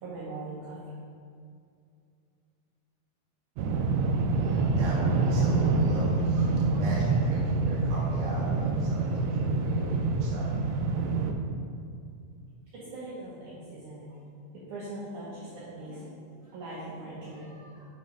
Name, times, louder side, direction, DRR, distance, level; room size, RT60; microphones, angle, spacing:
voice 1, 0.0-0.8 12.7-14.2 14.5-16.2 16.4-17.9, right 2 dB, 65° right, -8 dB, 2.2 m, -41 dB
sound 1, 3.6-11.3, right 3 dB, 85° right, 1.8 m, -26 dB
voice 2, 3.9-10.5, equal, 45° right, -7 dB, 2.0 m, -39 dB
7.5 x 4.1 x 5.3 m, 2.3 s
omnidirectional pair, 4.3 m